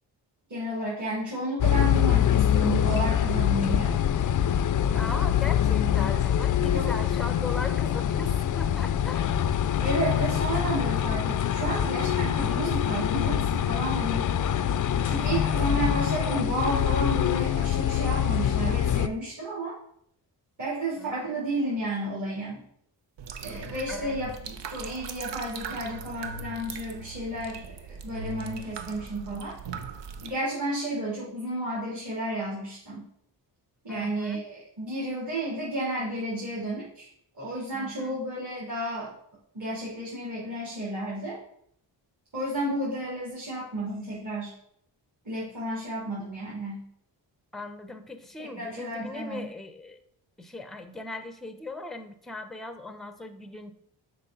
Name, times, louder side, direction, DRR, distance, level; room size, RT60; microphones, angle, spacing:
voice 1, 0.5-3.9 5.6-5.7 6.7-6.9 9.8-14.3 15.0-19.8 20.6-22.6 23.4-29.6 30.2-33.1 33.8-37.1 37.4-39.1 39.5-41.4 42.3-44.5 45.2-46.9 48.4-49.5, right 1 dB, 40° right, -7 dB, 2.8 m, -32 dB
sound 1, 1.6-19.1, left 10 dB, 45° left, 0.5 m, -25 dB
voice 2, 4.9-9.4 15.1-15.5 21.0-21.4 23.5-24.2 33.9-34.4 37.7-38.2 47.5-50.0 50.4-53.7, left 2 dB, ahead, 9 dB, 0.6 m, -39 dB
sound 2, 23.2-30.3, right 5 dB, 70° right, 0.8 m, -39 dB
6.5 x 4.5 x 3.9 m, 0.70 s
cardioid pair, 65°, 44 cm